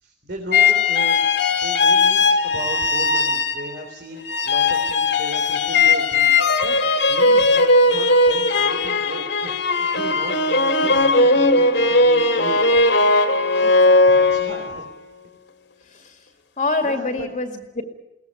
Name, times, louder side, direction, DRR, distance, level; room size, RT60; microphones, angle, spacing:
voice 1, 0.0-1.2 1.6-6.3 6.6-9.5 9.8-12.8 13.5-13.7 14.0-14.8 16.8-17.3, right 1 dB, 60° right, 1 dB, 3.8 m, -36 dB
sound 1, 0.5-3.9 4.3-14.9, left 3 dB, 65° left, 2.1 m, -18 dB
voice 2, 13.6-14.2 15.9-16.2 16.6-17.8, left 3 dB, 40° left, 5 dB, 2.2 m, -26 dB
22.0 x 18.5 x 9.8 m, 0.90 s
head